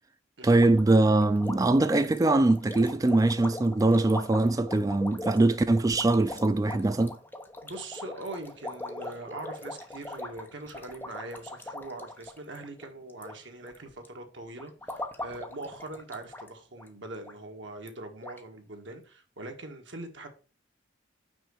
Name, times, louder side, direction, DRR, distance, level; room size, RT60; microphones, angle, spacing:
voice 1, 0.4-7.2, right 2 dB, 20° right, 0.3 m, -22 dB
sound 1, 0.6-13.4 13.6-14.1 14.6-16.5 16.8-16.9 17.2-17.3 17.9-18.0 18.2-18.4, left 2 dB, 10° left, 1.0 m, -41 dB
voice 2, 7.6-20.3, right 2 dB, 80° right, 1.6 m, -42 dB
6.2 x 5.3 x 4.7 m
head